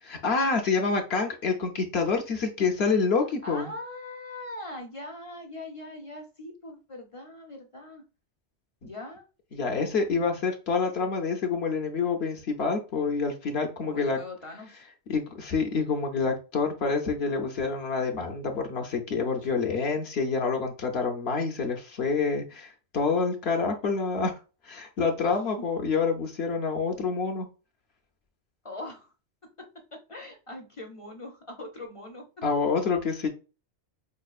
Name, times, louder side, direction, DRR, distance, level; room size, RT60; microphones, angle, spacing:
voice 1, 0.0-3.7 8.8-8.9 9.5-14.2 15.1-24.3 24.6-27.5 32.4-33.3, left 4 dB, 65° left, 3 dB, 0.9 m, -27 dB
voice 2, 3.4-8.0 8.8-9.2 13.8-14.8 19.4-19.5 25.2-25.6 28.6-29.1 29.6-32.3, left 2 dB, 35° left, 2 dB, 0.6 m, -41 dB
5.2 x 2.3 x 2.4 m, 0.32 s
omnidirectional pair, 1.2 m